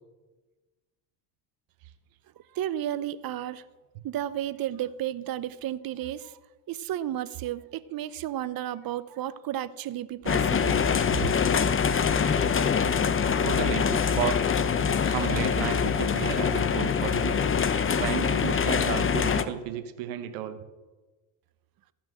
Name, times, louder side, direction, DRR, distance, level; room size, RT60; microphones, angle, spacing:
voice 1, 2.5-3.6 4.0-6.3 6.7-10.9, right 12 dB, 45° right, 16 dB, 0.7 m, -33 dB
sound 1, 10.3-19.4, left 6 dB, 25° left, 0.8 m, -24 dB
voice 2, 13.4-14.4 15.0-17.4 18.0-20.6, right 10 dB, 80° right, 8 dB, 1.2 m, -33 dB
14.5 x 6.0 x 7.6 m, 1.2 s
supercardioid pair, 90°, 49 cm